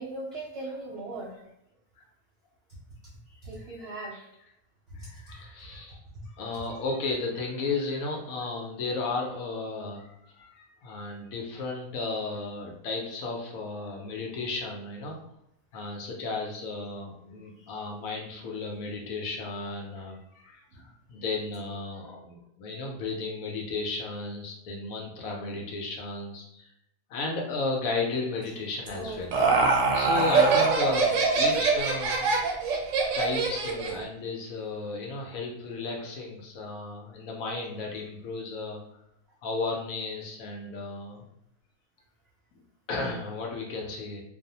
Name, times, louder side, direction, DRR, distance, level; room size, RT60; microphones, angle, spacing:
voice 1, 0.0-1.3 3.3-4.2 4.9-5.2 6.5-6.7 17.6-17.8 20.7-20.9 28.9-30.2, right 2 dB, 90° right, -3 dB, 0.5 m, -40 dB
voice 2, 5.0-6.0 6.4-10.1 10.4-15.2 15.7-20.8 21.1-26.7 27.1-29.3 29.9-32.3 32.9-38.8 39.4-41.2 42.9-44.2, left 3 dB, 70° left, 0 dB, 0.9 m, -34 dB
Laughter, 28.9-34.0, right 4 dB, 70° right, 0.9 m, -24 dB
2.5 x 2.0 x 2.7 m, 0.81 s
omnidirectional pair, 1.6 m